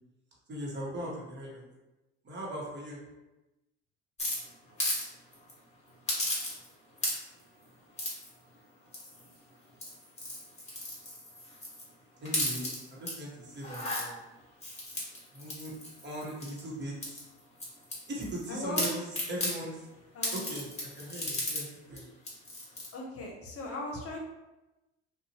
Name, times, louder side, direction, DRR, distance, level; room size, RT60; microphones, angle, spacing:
voice 1, 0.5-1.6 2.2-3.0 12.2-14.2 15.3-15.7 16.0-17.1 18.1-19.8 20.3-22.0, right 1 dB, 35° right, -3 dB, 1.1 m, -39 dB
sound 1, 4.2-5.0 5.3-5.5 6.1-6.7 7.0-7.4 8.0-8.3 8.9-9.3 9.7-11.9 12.2-13.1 13.6-14.0 14.6-16.6 17.0-18.4 18.7-19.5 20.2-21.6 22.0-22.1 22.2-22.9, left 1 dB, 20° left, 1.4 m, -35 dB
voice 2, 18.5-18.9 20.1-20.5 22.9-24.2, left 1 dB, 50° left, 0 dB, 0.8 m, -38 dB
2.5 x 2.3 x 2.9 m, 1.0 s
hypercardioid pair, 70°, 30 cm